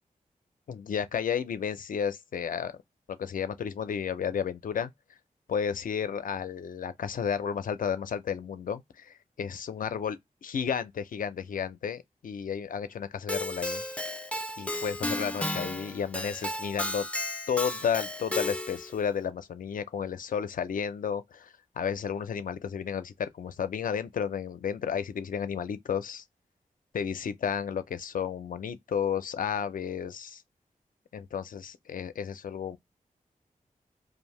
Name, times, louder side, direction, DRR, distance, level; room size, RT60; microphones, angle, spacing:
voice 1, 0.7-2.7 3.1-4.9 5.5-13.8 14.6-17.1 17.5-26.2 26.9-30.4 31.1-32.8, left 7 dB, 75° left, 0.4 m, -32 dB
Keyboard (musical), 13.3-18.9, left 1 dB, 10° left, 0.3 m, -34 dB
2.6 x 2.1 x 3.0 m
wide cardioid pair, 130°, 14 cm